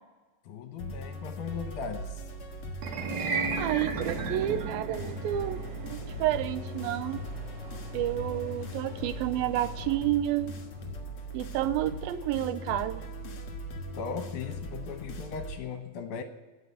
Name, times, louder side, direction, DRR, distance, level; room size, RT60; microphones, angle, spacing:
voice 1, 0.5-2.2 14.0-16.2, left 5 dB, 70° left, 7 dB, 2.2 m, -38 dB
sound 1, 0.8-15.6, equal, 45° left, 2.3 m, -40 dB
sound 2, 2.7-13.0, right 4 dB, 60° right, 2.5 m, -38 dB
voice 2, 3.5-7.2 7.9-10.6 11.3-13.0, right 13 dB, 80° right, 13 dB, 2.4 m, -30 dB
sound 3, 4.9-10.0, left 2 dB, 20° right, 2.8 m, -43 dB
17.0 x 6.5 x 9.5 m, 1.3 s
omnidirectional pair, 4.2 m